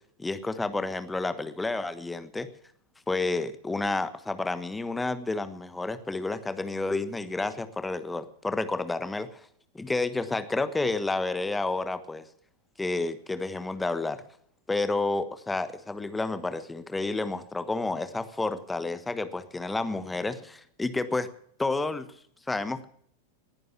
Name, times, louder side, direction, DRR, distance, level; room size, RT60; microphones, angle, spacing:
voice 1, 0.2-2.5 3.1-9.4 9.7-12.2 12.8-14.2 14.7-21.3 21.6-22.1 22.5-22.8, left 3 dB, 10° left, 12 dB, 1.3 m, -30 dB
19.5 x 11.0 x 6.0 m, 0.64 s
figure-of-eight pair, 90°, 0 cm